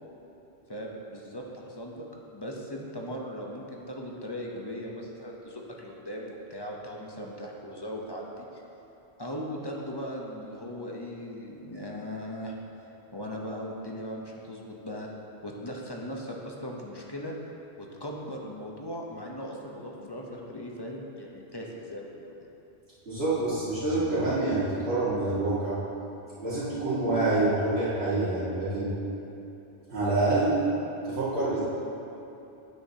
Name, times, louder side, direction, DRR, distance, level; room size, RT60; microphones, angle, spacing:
voice 1, 0.7-2.0 2.3-8.6 9.2-12.5 13.1-15.1 15.4-17.3 17.8-22.3, equal, 25° left, -2 dB, 0.7 m, -38 dB
voice 2, 23.1-25.8 26.4-28.9 29.9-30.5 31.0-31.6, right 2 dB, 70° right, -14 dB, 1.9 m, -27 dB
9.4 x 8.5 x 2.8 m, 2.9 s
omnidirectional pair, 1.1 m